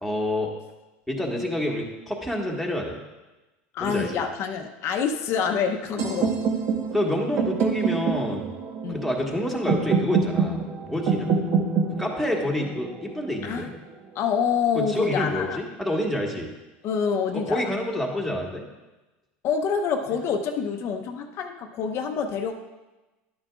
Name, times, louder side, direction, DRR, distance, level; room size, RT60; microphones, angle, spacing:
voice 1, 0.0-0.5 1.1-3.0 3.8-4.2 6.2-6.3 6.9-8.5 8.9-11.3 12.0-13.8 14.7-16.5 17.3-18.6, left 1 dB, ahead, -1 dB, 1.5 m, -28 dB
voice 2, 3.7-6.3 8.8-9.0 13.4-13.7 14.1-15.6 16.8-17.7 19.4-22.5, left 6 dB, 50° left, 5 dB, 0.7 m, -26 dB
sound 1, 6.0-13.9, right 5 dB, 50° right, 1.2 m, -26 dB
11.0 x 9.0 x 2.4 m, 1.1 s
supercardioid pair, 115°, 6 cm